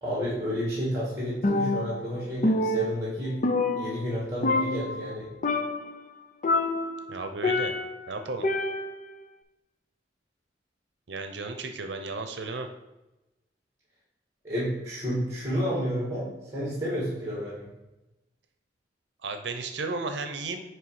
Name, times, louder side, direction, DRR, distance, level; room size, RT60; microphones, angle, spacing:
voice 1, 0.0-3.4 3.7-5.3 14.4-17.7, equal, 20° right, -6 dB, 2.1 m, -31 dB
Percussion, 1.4-2.1 2.4-4.2 4.4-5.1 5.4-5.9 6.4-8.0 8.4-9.1, left 2 dB, 45° left, 0.6 m, -27 dB
voice 2, 7.1-7.7 8.1-8.5 11.1-12.7 19.2-20.6, right 3 dB, 85° right, 6 dB, 0.7 m, -34 dB
9.3 x 3.3 x 4.8 m, 1.0 s
head